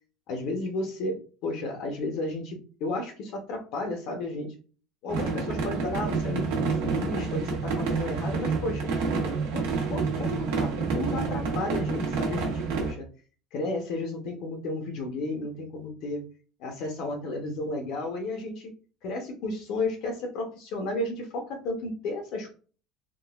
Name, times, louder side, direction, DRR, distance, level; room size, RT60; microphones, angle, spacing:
voice 1, 0.3-1.2 1.4-4.5 5.0-8.9 9.5-9.6 9.9-13.1 13.5-16.2 16.6-18.7 19.0-22.5, left 2 dB, 50° left, 3 dB, 0.7 m, -33 dB
sound 1, 5.1-12.9, right 4 dB, 85° right, 1.2 m, -28 dB
3.6 x 2.3 x 2.3 m, 0.39 s
cardioid pair, 180°, 0 cm